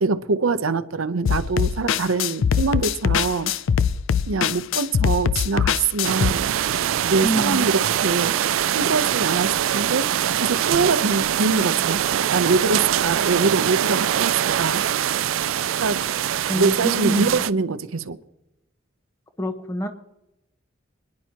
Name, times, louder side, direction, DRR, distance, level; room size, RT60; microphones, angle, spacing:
voice 1, 0.0-3.5 4.3-6.5 7.0-8.4 8.7-10.1 10.3-12.0 12.3-14.8 15.8-16.0 16.5-18.2, right 4 dB, 90° right, 0.7 m, -23 dB
sound 1, 1.3-6.3, left 7 dB, 70° left, 0.4 m, -22 dB
sound 2, 6.0-17.5, right 10 dB, 75° right, 0.4 m, -23 dB
voice 2, 7.2-7.7 16.5-17.4 19.4-19.9, right 1 dB, 15° left, 1.1 m, -26 dB
26.5 x 10.5 x 2.9 m
head